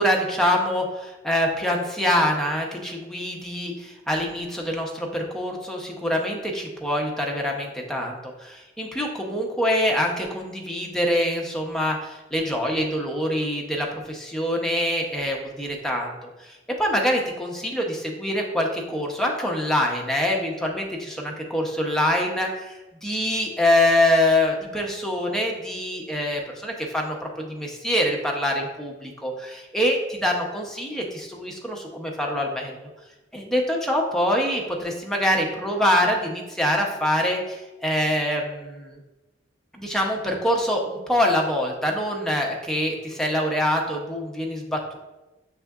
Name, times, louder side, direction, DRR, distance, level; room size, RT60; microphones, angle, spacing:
voice 1, 0.0-22.7 23.0-32.8 33.3-39.0 39.7-45.0, left 1 dB, 5° left, 0 dB, 0.6 m, -25 dB
6.2 x 3.5 x 2.3 m, 1.1 s
head